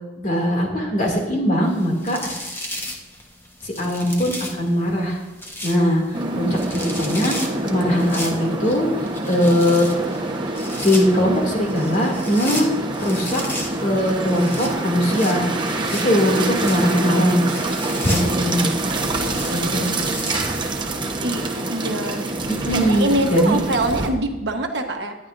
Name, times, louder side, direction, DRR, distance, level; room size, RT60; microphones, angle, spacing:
voice 1, 0.2-2.4 3.6-5.2 5.6-8.9 9.3-9.9 10.8-12.6 13.0-13.4 13.8-15.5 15.9-17.5 18.0-18.7 19.5-20.0 22.5-23.6, equal, 40° left, 0 dB, 2.6 m, -20 dB
sound 1, 1.7-20.9, left 1 dB, 15° left, 1.3 m, -35 dB
sound 2, 6.1-24.1, right 2 dB, 25° right, 1.1 m, -26 dB
voice 2, 6.2-6.7 19.2-20.1 21.2-21.4 21.7-22.2 22.7-25.1, right 2 dB, 65° right, 3 dB, 1.3 m, -24 dB
18.5 x 11.0 x 2.6 m, 1.1 s
head